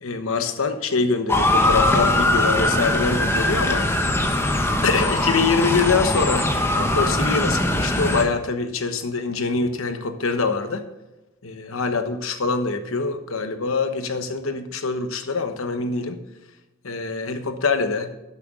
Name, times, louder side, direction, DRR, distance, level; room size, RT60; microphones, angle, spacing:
voice 1, 0.0-3.9 4.8-10.8 11.4-16.2 16.8-18.1, left 4 dB, 70° left, 8 dB, 1.1 m, -24 dB
Motor vehicle (road) / Siren, 1.3-8.2, left 1 dB, 10° left, 1.1 m, -21 dB
12.0 x 8.1 x 3.8 m, 1.0 s
head